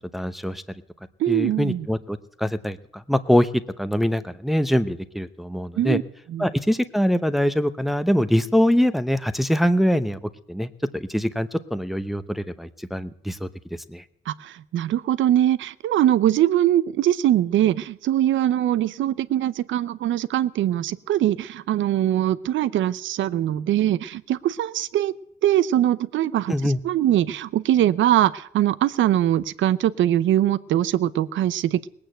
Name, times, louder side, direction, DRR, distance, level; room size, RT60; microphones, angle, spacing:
voice 1, 0.1-0.6 1.3-3.5 3.8-6.0 6.4-10.2 10.5-13.5 13.9-14.0 26.5-26.8, equal, ahead, 11 dB, 0.9 m, -23 dB
voice 2, 1.2-1.9 5.8-6.0 6.3-6.5 14.3-25.1 25.4-31.9, right 12 dB, 75° right, 17 dB, 0.7 m, -22 dB
19.5 x 8.7 x 7.9 m, 0.78 s
cardioid pair, 90°, 20 cm